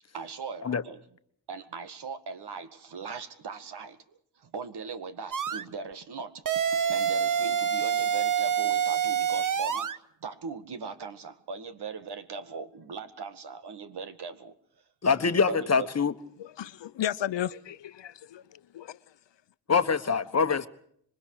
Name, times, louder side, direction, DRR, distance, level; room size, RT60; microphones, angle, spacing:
voice 1, 0.1-1.0 1.5-6.4 6.7-14.5 15.5-15.9, right 5 dB, 65° right, 2.0 m, -40 dB
sound 1, 5.3-5.6 6.5-10.0, right 8 dB, 45° right, 1.0 m, -26 dB
voice 2, 15.0-16.1 19.7-20.7, left 5 dB, 35° left, 1.3 m, -24 dB
voice 3, 16.4-19.0, left 11 dB, 75° left, 0.9 m, -34 dB
26.5 x 23.5 x 4.9 m
wide cardioid pair, 120°, 44 cm